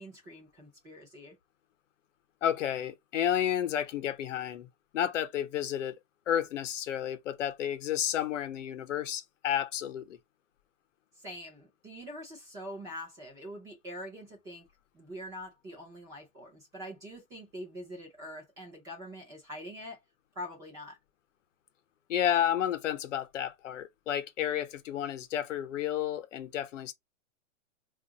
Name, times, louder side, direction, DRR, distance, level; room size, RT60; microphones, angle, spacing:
voice 1, 0.0-1.3 11.2-14.7 14.9-20.0 20.4-21.0, equal, 10° right, 0.5 m, -44 dB
voice 2, 2.4-4.7 4.9-5.9 6.3-10.2 22.1-26.9, left 10 dB, 65° left, 0.8 m, -31 dB
4.4 x 2.5 x 2.8 m
hypercardioid pair, 160°, 39 cm